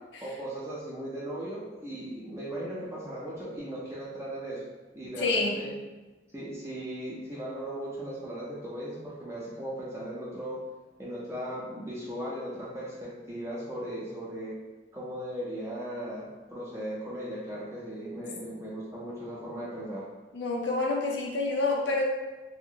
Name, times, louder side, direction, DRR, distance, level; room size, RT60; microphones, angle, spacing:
voice 1, 0.2-4.6 4.9-5.7 6.3-10.6 11.0-14.5 14.9-20.1, right 1 dB, 15° right, -7 dB, 0.5 m, -37 dB
voice 2, 5.2-5.6 20.3-22.0, left 3 dB, 75° left, -1 dB, 0.5 m, -28 dB
2.7 x 2.4 x 2.7 m, 1.2 s
head